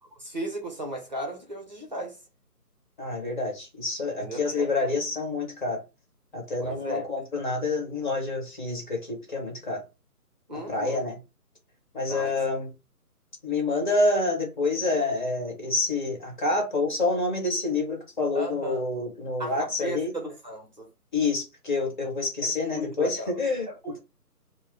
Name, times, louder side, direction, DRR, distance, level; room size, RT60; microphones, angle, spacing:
voice 1, 0.2-2.2 4.2-4.9 6.6-7.1 10.5-11.0 12.1-12.4 18.3-18.9 19.4-20.9 22.4-23.4 23.7-24.0, right 1 dB, 30° right, 0.8 m, -36 dB
voice 2, 3.0-5.8 6.3-9.8 10.7-11.2 11.9-12.7 13.4-20.1 21.1-23.7, left 3 dB, 30° left, 1.3 m, -27 dB
3.0 x 2.2 x 3.6 m
figure-of-eight pair, 155°, 47 cm